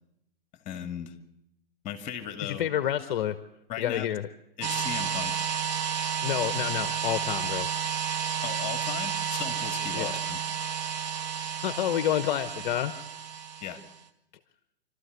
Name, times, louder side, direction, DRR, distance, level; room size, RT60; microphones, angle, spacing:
voice 1, 0.6-1.1 1.8-2.7 3.7-4.1 4.6-5.5 8.4-10.4 13.6-13.8, left 10 dB, 25° left, 8 dB, 2.3 m, -37 dB
voice 2, 2.4-3.4 3.8-4.3 6.2-7.7 9.9-10.1 11.6-12.9, left 11 dB, 50° left, 12 dB, 1.0 m, -28 dB
sound 1, 4.6-14.0, right 8 dB, 50° right, 1.8 m, -31 dB
26.0 x 13.0 x 8.1 m, 0.83 s
hypercardioid pair, 130°, 29 cm